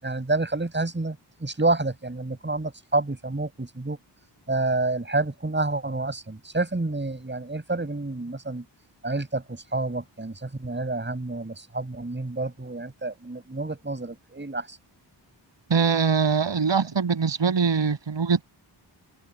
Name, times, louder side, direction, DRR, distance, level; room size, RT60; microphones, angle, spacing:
voice 1, 0.0-4.0 4.5-8.6 9.0-14.8, right 2 dB, 25° right, 7.7 m, -29 dB
voice 2, 15.7-18.4, right 5 dB, 75° right, 7.3 m, -22 dB
open air
wide cardioid pair, 130°, 44 cm